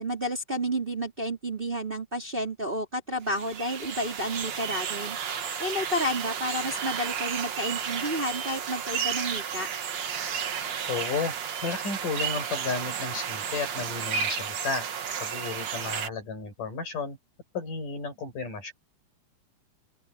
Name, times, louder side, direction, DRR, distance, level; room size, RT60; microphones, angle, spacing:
voice 1, 0.0-9.7, equal, 15° right, 4.0 m, -31 dB
sound 1, 3.3-16.1, right 7 dB, 55° right, 2.8 m, -32 dB
voice 2, 10.9-11.3 11.6-14.9 15.2-17.2 17.5-18.7, left 4 dB, 65° left, 7.6 m, -33 dB
open air
omnidirectional pair, 4.0 m